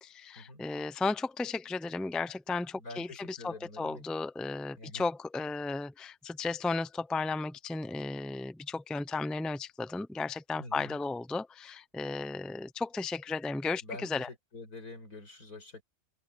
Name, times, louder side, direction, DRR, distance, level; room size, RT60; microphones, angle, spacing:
voice 1, 0.0-14.3, left 3 dB, ahead, 0.4 m, -34 dB
voice 2, 2.8-4.0 4.8-5.0 10.6-11.0 13.8-14.1 14.5-15.8, left 2 dB, 90° left, 7.0 m, -46 dB
omnidirectional pair, 1.5 m